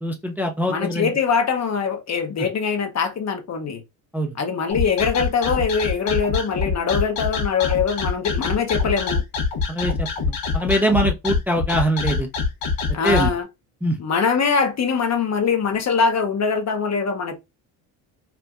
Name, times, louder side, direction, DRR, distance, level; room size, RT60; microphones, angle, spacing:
voice 1, 0.0-1.1 4.1-4.3 9.7-12.3 13.0-13.3 13.8-14.0, right 1 dB, 5° right, 0.6 m, -23 dB
voice 2, 0.7-3.8 4.4-9.2 12.9-13.5 14.0-17.4, left 5 dB, 35° left, 0.9 m, -22 dB
sound 1, 4.7-13.3, left 5 dB, 80° left, 1.3 m, -24 dB
4.5 x 2.2 x 2.5 m
supercardioid pair, 70°, 45 cm